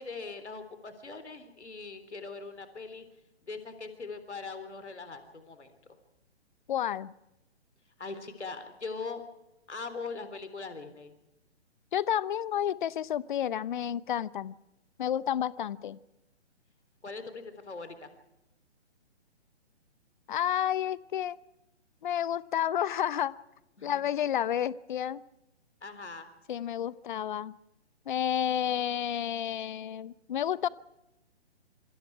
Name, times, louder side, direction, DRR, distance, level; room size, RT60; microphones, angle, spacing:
voice 1, 0.0-3.1 3.5-5.7 8.0-9.2 9.7-11.1 17.0-18.1 23.8-24.0 25.8-26.3, left 4 dB, 80° left, 9 dB, 3.6 m, -41 dB
voice 2, 6.7-7.1 11.9-14.5 15.0-16.0 20.3-21.4 22.0-23.4 23.8-25.2 26.5-27.6 28.1-30.7, left 10 dB, 45° left, 20 dB, 0.8 m, -30 dB
26.5 x 25.0 x 4.7 m, 0.90 s
figure-of-eight pair, 135°, 34 cm